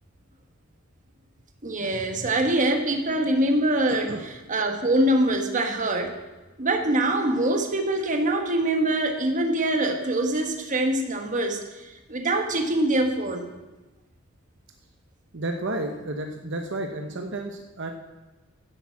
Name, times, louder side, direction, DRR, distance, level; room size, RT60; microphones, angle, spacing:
voice 1, 1.6-6.2 6.6-13.5, right 1 dB, 35° right, 4 dB, 1.3 m, -24 dB
voice 2, 3.9-4.2 15.3-17.9, right 2 dB, 60° right, 3 dB, 1.0 m, -32 dB
11.0 x 7.9 x 7.3 m, 1.2 s
head